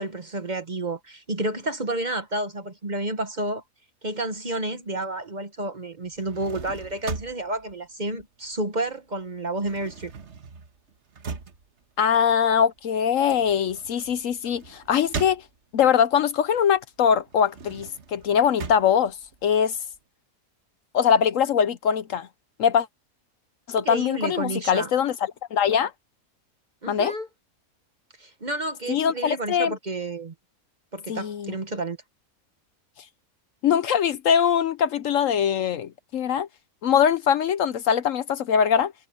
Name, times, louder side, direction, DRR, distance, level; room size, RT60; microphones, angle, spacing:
voice 1, 0.0-3.6 4.0-10.1 23.7-24.9 26.8-27.3 28.2-30.3 30.9-32.0, right 2 dB, 35° right, 1.1 m, -30 dB
sound 1, 6.0-8.9 9.2-16.0 16.4-20.0, right 5 dB, 50° right, 1.5 m, -39 dB
voice 2, 12.0-15.4 15.7-19.2 19.4-19.8 20.9-22.3 22.6-22.9 23.7-25.1 25.5-25.9 26.9-27.1 28.9-29.7 31.1-31.6 33.6-36.5 36.8-39.1, left 8 dB, 65° left, 1.0 m, -22 dB
omnidirectional pair, 1.6 m